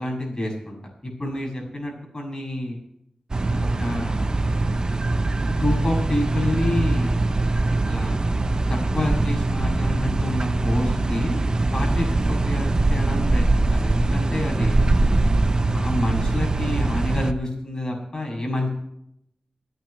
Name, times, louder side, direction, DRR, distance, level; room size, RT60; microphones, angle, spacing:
voice 1, 0.0-2.8 3.6-4.3 5.5-7.2 7.9-8.3 8.7-11.4 11.7-14.9 15.7-18.7, left 1 dB, 35° left, 0 dB, 7.2 m, -28 dB
sound 1, 3.3-17.3, right 2 dB, 40° right, 1.0 m, -22 dB
28.0 x 9.7 x 3.4 m, 0.76 s
wide cardioid pair, 75°, 2 cm